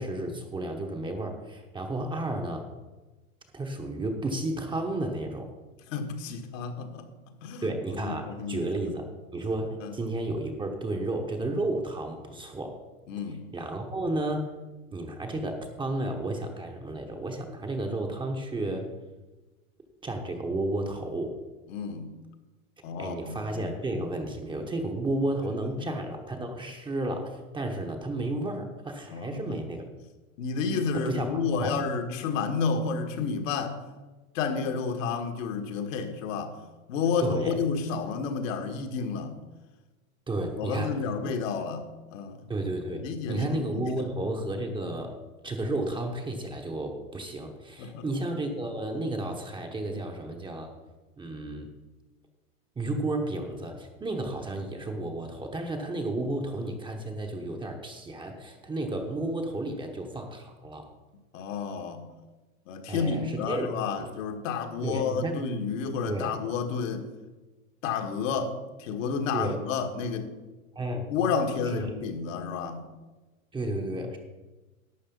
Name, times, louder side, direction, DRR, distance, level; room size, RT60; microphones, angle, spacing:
voice 1, 0.0-2.6 3.5-5.5 7.6-9.1 9.3-12.8 13.5-14.5 14.9-18.9 20.0-21.4 23.0-29.8 30.9-31.7 37.2-37.6 40.3-40.9 42.5-45.2 45.4-50.7 51.2-51.7 52.8-60.9 62.9-63.7 64.0-64.1 64.8-65.4 66.1-66.3 69.3-69.6 70.7-71.1 71.7-71.9 73.5-74.2, right 2 dB, 10° right, 3 dB, 1.1 m, -32 dB
voice 2, 5.9-7.1 7.4-7.7 7.9-8.6 9.8-9.9 13.1-13.5 21.7-22.1 22.8-23.4 25.8-25.9 29.1-29.4 30.4-33.8 34.3-36.6 36.9-39.4 40.6-42.5 43.0-44.1 47.8-48.0 61.3-62.1 62.7-67.1 67.8-70.3 71.1-72.8, left 5 dB, 60° left, 6 dB, 1.7 m, -30 dB
12.0 x 7.7 x 5.4 m, 1.2 s
hypercardioid pair, 130°, 43 cm